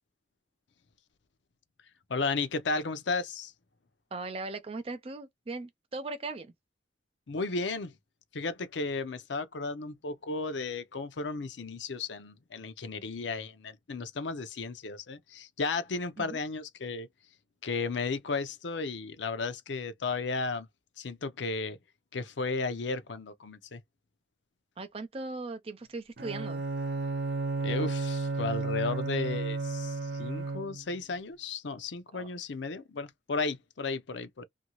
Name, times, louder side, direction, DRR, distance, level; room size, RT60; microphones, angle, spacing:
voice 1, 2.1-3.5 7.3-7.9 8.3-17.1 17.6-20.7 21.0-21.8 22.1-23.8 27.6-34.4, left 4 dB, 80° left, 0.6 m, -34 dB
voice 2, 4.1-6.5 16.2-16.4 24.8-26.6 32.1-32.3, right 3 dB, 30° right, 0.4 m, -38 dB
Bowed string instrument, 26.2-31.0, right 3 dB, 70° right, 0.6 m, -33 dB
2.7 x 2.6 x 2.9 m
head